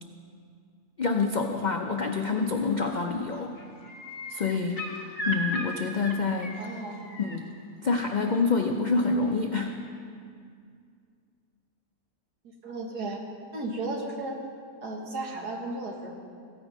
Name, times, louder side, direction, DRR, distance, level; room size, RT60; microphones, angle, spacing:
voice 1, 1.0-3.6 4.3-6.7 7.2-7.5 7.8-9.8, left 4 dB, 70° left, 3 dB, 0.4 m, -27 dB
sound 1, 2.7-3.0 3.3-7.4 9.0-9.1, equal, 25° left, 1.1 m, -37 dB
voice 2, 6.6-7.0 12.6-13.2 13.5-14.4 14.8-16.2, right 2 dB, 90° right, 1 dB, 2.0 m, -34 dB
15.0 x 9.0 x 5.3 m, 2.3 s
omnidirectional pair, 1.7 m